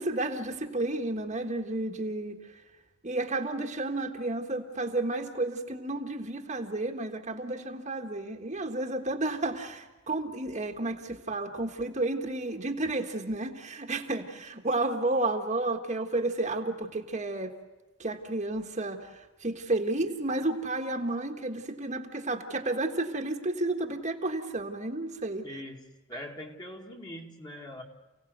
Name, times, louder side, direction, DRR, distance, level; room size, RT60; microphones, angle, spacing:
voice 1, 0.0-2.6 3.0-17.5 18.0-25.4, right 2 dB, 35° right, 3 dB, 1.6 m, -31 dB
voice 2, 25.4-27.8, left 1 dB, 20° left, 1 dB, 2.1 m, -42 dB
29.0 x 17.0 x 8.0 m, 1.2 s
head